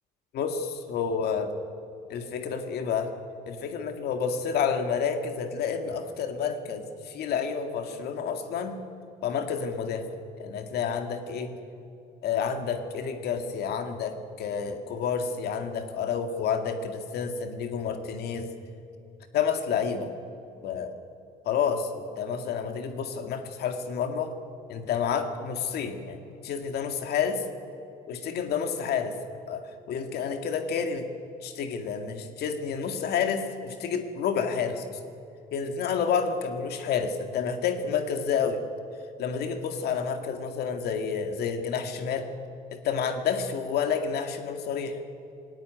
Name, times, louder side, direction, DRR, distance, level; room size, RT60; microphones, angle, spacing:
voice 1, 0.3-1.5 2.1-3.1 3.5-8.8 9.2-10.1 10.4-11.5 12.2-18.5 19.3-20.1 20.6-20.9 21.5-24.3 24.7-26.2 26.4-27.4 28.1-29.1 29.5-31.1 31.4-34.9 35.5-38.6 39.2-42.3 42.7-45.0, left 6 dB, 70° left, 6 dB, 2.1 m, -29 dB
18.5 x 18.0 x 9.4 m, 2.7 s
cardioid pair, 110°, 17 cm